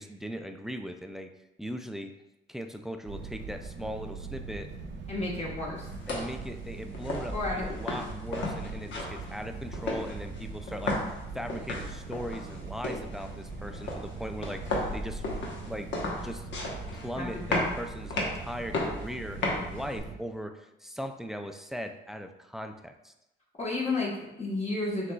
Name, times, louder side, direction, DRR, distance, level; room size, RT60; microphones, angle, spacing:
voice 1, 0.0-1.3 1.6-2.1 2.5-4.7 6.1-11.0 11.3-15.3 15.7-15.9 16.2-16.5 16.9-23.1, equal, ahead, 7 dB, 0.3 m, -39 dB
sound 1, 3.1-20.2, right 4 dB, 70° right, 0.7 m, -41 dB
voice 2, 5.1-5.9 7.3-7.7 17.2-17.4 23.6-25.1, left 2 dB, 35° left, -4 dB, 1.1 m, -32 dB
sound 2, 5.8-20.0, left 2 dB, 65° left, 1.0 m, -35 dB
6.2 x 3.1 x 2.3 m, 0.92 s
cardioid pair, 90°, 20 cm